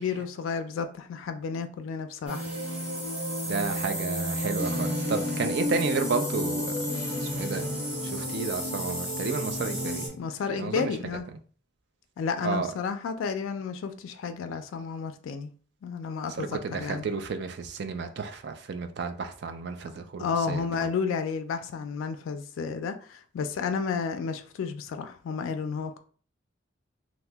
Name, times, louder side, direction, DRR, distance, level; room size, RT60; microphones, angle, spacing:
voice 1, 0.0-2.5 10.2-11.2 12.2-15.5 15.8-17.0 20.2-26.0, left 5 dB, 85° left, 0.3 m, -31 dB
sound 1, 2.3-10.1, equal, 5° right, 1.3 m, -31 dB
voice 2, 3.5-7.7 8.0-10.2 10.5-10.9 12.4-12.7 16.4-20.7, right 4 dB, 55° right, 0.4 m, -32 dB
2.8 x 2.0 x 3.3 m
head